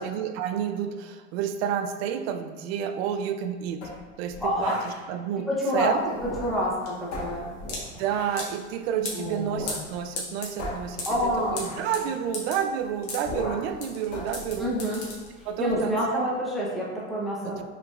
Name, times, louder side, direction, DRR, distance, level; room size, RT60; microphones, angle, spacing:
voice 1, 0.0-3.8 4.2-6.1 8.0-14.8 15.4-16.3 17.4-17.6, right 8 dB, 60° right, 7 dB, 0.5 m, -30 dB
sound 1, 3.8-5.0 6.1-6.7 7.1-8.5 9.5-9.8 10.1-10.2 10.6-12.0 13.2-13.8 14.1-15.2 15.7-16.1, left 1 dB, 60° left, 1.4 m, -38 dB
voice 2, 4.4-4.8 5.5-7.5 9.1-9.6 11.1-11.8 14.6-15.0 15.4-17.6, equal, ahead, -6 dB, 0.8 m, -28 dB
sound 2, 5.8-15.7, left 3 dB, 45° left, 1.1 m, -38 dB
4.8 x 3.3 x 2.4 m, 1.3 s
hypercardioid pair, 115°, 36 cm